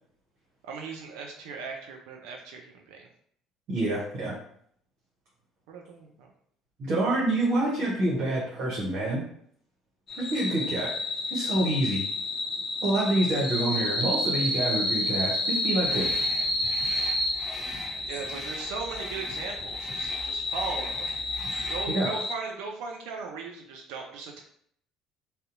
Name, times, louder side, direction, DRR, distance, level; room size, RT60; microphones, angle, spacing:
voice 1, 0.6-3.1 5.7-6.3 18.1-21.1 21.7-24.4, right 4 dB, 70° right, 1 dB, 0.3 m, -38 dB
voice 2, 3.7-4.3 6.8-9.2 10.2-10.9 11.3-12.0 12.8-16.1 21.9-22.1, right 1 dB, 55° right, -5 dB, 0.8 m, -27 dB
sound 1, 10.1-22.3, left 1 dB, 45° left, 0.7 m, -30 dB
sound 2, 15.8-21.9, equal, 25° right, 1.5 m, -42 dB
2.6 x 2.0 x 2.5 m, 0.65 s
hypercardioid pair, 60°, 0 cm